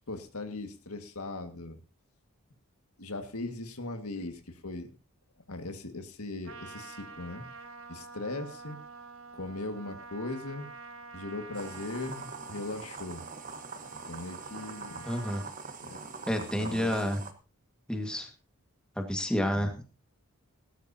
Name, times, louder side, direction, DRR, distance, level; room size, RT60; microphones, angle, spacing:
voice 1, 0.1-1.8 3.0-5.0 5.5-7.5 7.9-8.8 9.3-10.7 11.1-13.2 14.1-15.0 15.8-16.9 19.6-19.7, left 2 dB, 85° left, 6 dB, 2.0 m, -39 dB
Trumpet, 6.4-15.5, right 4 dB, 70° right, 1.6 m, -47 dB
sound 1, 11.5-17.3, right 4 dB, 35° right, 1.3 m, -43 dB
voice 2, 15.1-15.4 16.3-17.2 17.9-18.3 19.0-19.8, equal, 5° left, 3 dB, 1.8 m, -30 dB
19.0 x 12.5 x 2.9 m, 0.34 s
head